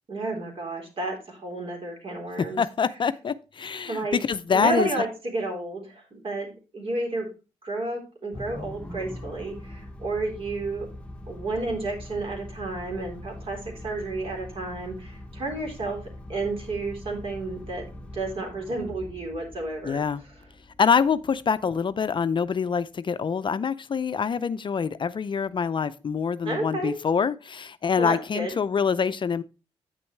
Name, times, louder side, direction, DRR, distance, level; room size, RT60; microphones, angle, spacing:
voice 1, 0.1-2.6 3.9-4.2 4.5-7.3 7.6-10.9 11.3-16.0 16.3-20.0 26.4-27.0 28.0-28.5, right 2 dB, 50° right, 3.7 m, -31 dB
voice 2, 2.4-4.9 19.8-20.2 20.8-29.4, left 6 dB, 40° left, 0.5 m, -25 dB
sound 1, 8.3-22.8, left 1 dB, 10° left, 1.2 m, -42 dB
8.9 x 6.8 x 3.2 m
supercardioid pair, 65°, 12 cm